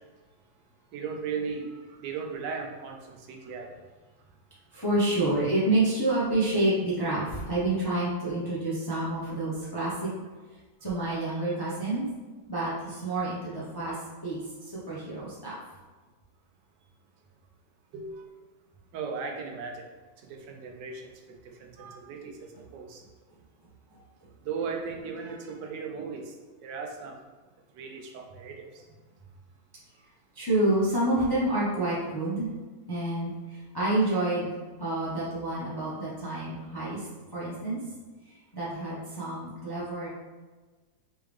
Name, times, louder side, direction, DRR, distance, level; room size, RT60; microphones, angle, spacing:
voice 1, 0.9-3.7 17.9-18.2 18.9-19.8 20.3-21.1 21.6-22.4 22.7-23.0 24.4-26.3 26.6-27.2 27.8-28.7, right 5 dB, 70° right, 2 dB, 1.2 m, -36 dB
voice 2, 4.7-10.1 10.8-12.1 12.5-15.5 30.3-32.5 32.9-37.8 38.3-40.1, right 2 dB, 25° left, -8 dB, 0.5 m, -28 dB
4.5 x 3.3 x 3.4 m, 1.3 s
omnidirectional pair, 2.1 m